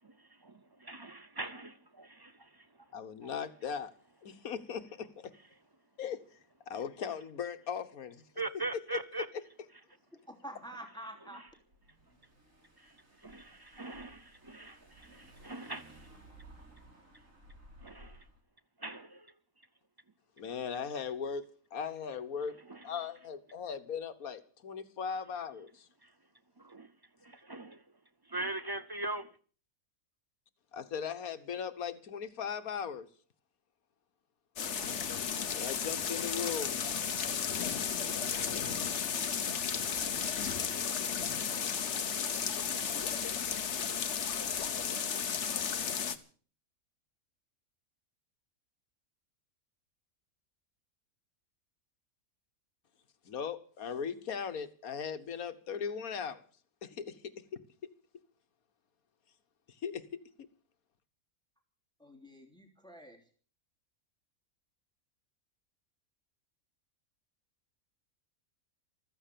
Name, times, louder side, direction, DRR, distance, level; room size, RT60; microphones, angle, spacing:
voice 1, 0.4-2.7 3.2-3.3 8.4-9.3 12.8-12.9 13.2-16.0 17.8-18.2 18.8-19.3 22.7-22.8 26.0-26.1 26.6-26.9 27.2-27.8 28.3-29.3, right 2 dB, 30° right, 0.4 m, -41 dB
voice 2, 2.9-3.9 4.2-5.1 6.0-6.2 6.7-8.2 8.9-9.0 20.4-21.4 21.7-22.5 22.8-25.9 30.7-33.1 35.5-36.8 53.3-56.4 56.8-57.2 59.8-60.2, left 7 dB, 80° left, 1.7 m, -38 dB
voice 3, 10.3-11.4 62.0-63.2, right 1 dB, 5° left, 2.9 m, -47 dB
Car / Engine, 11.5-18.4, right 1 dB, 65° right, 4.7 m, -57 dB
sound 1, 34.6-46.2, left 7 dB, 55° left, 1.3 m, -34 dB
15.0 x 14.0 x 6.8 m
omnidirectional pair, 1.5 m